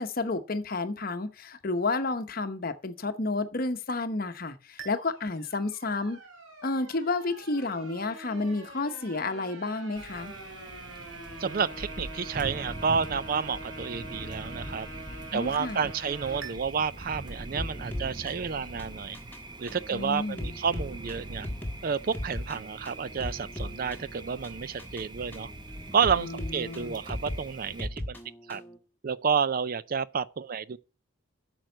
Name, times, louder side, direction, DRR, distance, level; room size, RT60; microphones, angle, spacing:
voice 1, 0.0-6.2 6.6-10.3 15.3-15.8 19.9-20.5 26.2-27.0, left 3 dB, 45° left, 0.9 m, -31 dB
sound 1, 4.8-16.5, right 1 dB, 80° right, 2.9 m, -45 dB
Thunder, 9.9-27.9, right 2 dB, 20° right, 0.9 m, -43 dB
voice 2, 11.4-14.9 15.3-19.2 19.6-21.5 21.8-25.5 25.9-28.2 28.5-28.6 29.0-30.8, right 6 dB, 40° right, 0.4 m, -30 dB
sound 2, 17.6-28.8, left 1 dB, 10° left, 1.3 m, -39 dB
8.8 x 6.2 x 7.9 m
head